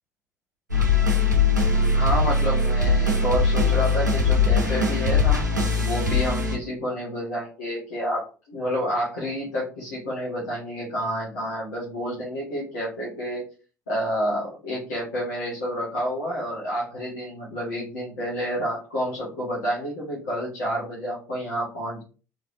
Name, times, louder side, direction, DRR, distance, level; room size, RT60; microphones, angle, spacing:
sound 1, 0.7-6.6, left 3 dB, 90° right, 0.6 m, -21 dB
voice 1, 1.9-5.4 5.8-13.5 13.9-22.0, equal, 70° left, -7 dB, 1.4 m, -29 dB
3.4 x 3.2 x 2.7 m, 0.35 s
figure-of-eight pair, 55°, 9 cm